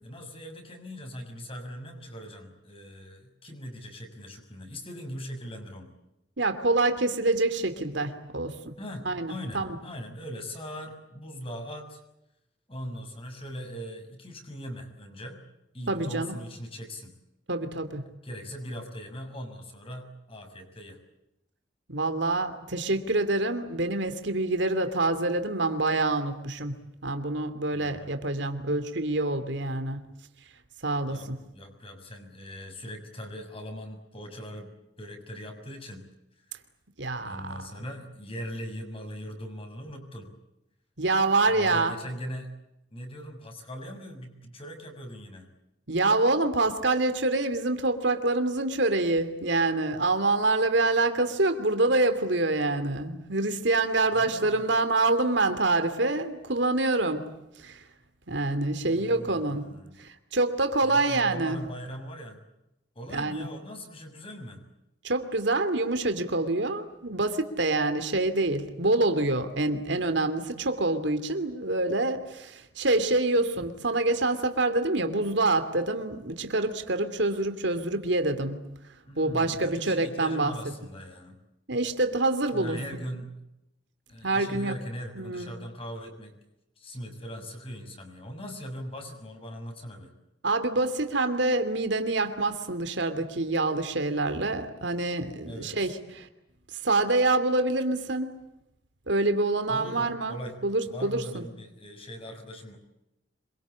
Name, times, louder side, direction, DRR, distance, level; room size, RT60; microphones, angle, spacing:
voice 1, 0.0-5.9 8.8-12.0 12.7-15.4 15.7-17.2 18.2-21.0 27.7-28.1 31.1-36.1 37.2-40.3 41.5-42.5 42.9-45.5 54.1-54.7 58.8-60.0 60.8-62.4 62.9-64.6 79.1-81.4 82.5-83.3 84.1-86.4 86.8-90.1 95.4-95.9 99.6-100.6 100.8-102.8, equal, 30° left, 4 dB, 6.5 m, -40 dB
voice 2, 6.4-8.7 9.1-9.6 15.9-16.3 17.5-18.0 21.9-26.7 27.0-30.0 30.8-31.2 37.0-37.6 41.0-41.9 45.9-57.3 57.6-57.8 58.3-59.6 60.0-61.6 63.1-63.5 65.0-78.6 79.2-80.5 81.7-83.0 84.2-84.7 85.2-85.5 90.4-96.3 96.8-98.3 99.1-100.4 100.6-101.4, right 2 dB, 75° right, 9 dB, 2.7 m, -26 dB
26.5 x 23.5 x 8.6 m, 0.88 s
head